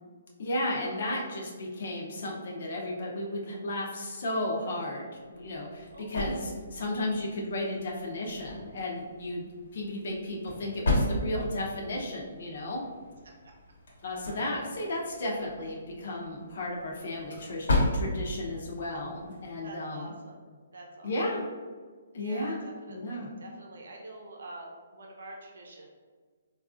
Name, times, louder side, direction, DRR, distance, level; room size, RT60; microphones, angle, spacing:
voice 1, 0.4-12.8 14.0-17.7 17.9-20.1 21.0-21.5 22.1-22.6 22.9-23.3, left 1 dB, 50° left, -2 dB, 0.6 m, -34 dB
sound 1, 5.3-19.7, left 1 dB, 70° left, 1.0 m, -35 dB
voice 2, 19.6-20.4 20.7-21.1 22.1-25.9, right 2 dB, 80° right, 0 dB, 0.6 m, -46 dB
3.9 x 2.4 x 2.5 m, 1.5 s
hypercardioid pair, 170°, 0 cm